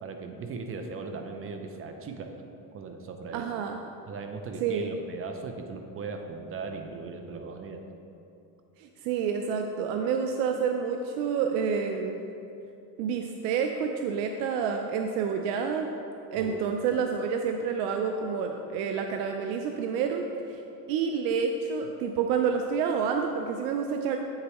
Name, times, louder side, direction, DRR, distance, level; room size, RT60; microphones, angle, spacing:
voice 1, 0.0-2.3 2.7-3.5 4.1-7.8 16.3-16.6, right 4 dB, 30° right, 5 dB, 0.6 m, -38 dB
voice 2, 3.3-3.8 4.6-4.9 8.8-12.2 13.0-15.9 16.3-20.6 20.9-24.2, right 6 dB, 75° right, 4 dB, 0.6 m, -29 dB
8.5 x 6.6 x 3.0 m, 2.7 s
cardioid pair, 120°, 42 cm